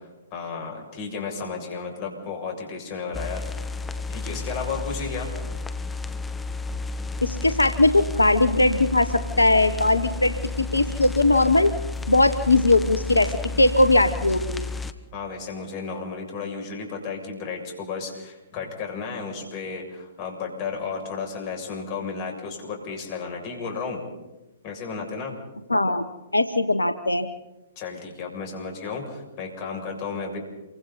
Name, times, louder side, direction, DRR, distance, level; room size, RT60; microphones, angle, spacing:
voice 1, 0.0-3.6 4.1-5.3 15.1-24.0 24.6-25.3 27.8-30.4, left 5 dB, 35° left, 2 dB, 7.1 m, -33 dB
sound 1, 3.1-14.9, left 3 dB, 10° left, 1.3 m, -32 dB
voice 2, 7.2-9.1 9.4-11.8 12.1-13.3 13.6-14.6 25.7-26.0 26.3-27.3, left 2 dB, 85° left, 11 dB, 1.1 m, -19 dB
28.5 x 24.5 x 4.2 m, 1.0 s
figure-of-eight pair, 120°, 0 cm